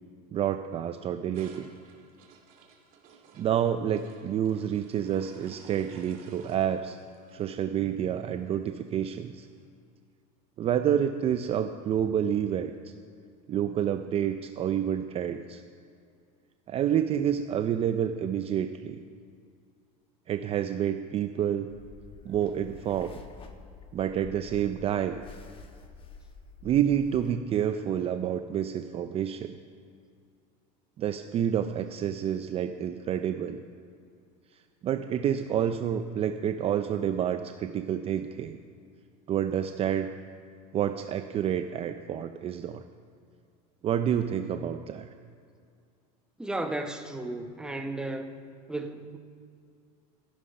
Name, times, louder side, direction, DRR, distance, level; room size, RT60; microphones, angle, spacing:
voice 1, 0.3-1.7 3.4-7.0 7.3-9.5 10.6-12.9 13.5-15.6 16.7-19.0 20.3-21.7 22.2-23.1 23.9-25.2 26.6-29.5 31.0-33.6 34.8-38.6 39.3-40.1 40.7-42.8 43.8-45.1, right 9 dB, 30° right, 8 dB, 0.5 m, -28 dB
sound 1, 1.3-9.6, right 5 dB, 45° right, 2.3 m, -55 dB
sound 2, 21.7-27.3, left 4 dB, 25° left, 1.1 m, -49 dB
voice 2, 46.4-48.3 48.7-49.2, right 2 dB, 5° right, 5 dB, 0.9 m, -34 dB
13.5 x 11.5 x 5.4 m, 2.3 s
supercardioid pair, 130°, 20 cm